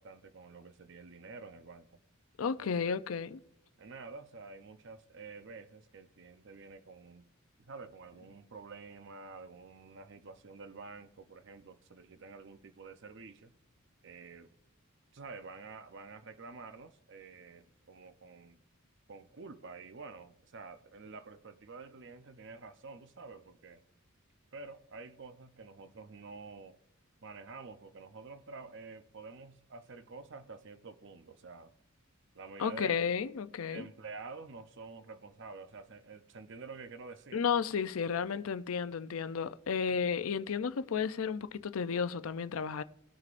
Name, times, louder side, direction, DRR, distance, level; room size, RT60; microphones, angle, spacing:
voice 1, 0.0-1.9 2.6-2.7 3.8-7.2 7.6-13.5 14.0-14.5 15.1-18.6 19.1-23.8 24.5-26.8 27.2-31.8 32.3-33.0 33.7-37.4, right 4 dB, 60° right, 0.7 m, -49 dB
voice 2, 2.4-3.4 32.6-33.9 37.3-42.8, left 6 dB, 75° left, 0.5 m, -33 dB
19.0 x 6.4 x 2.5 m
head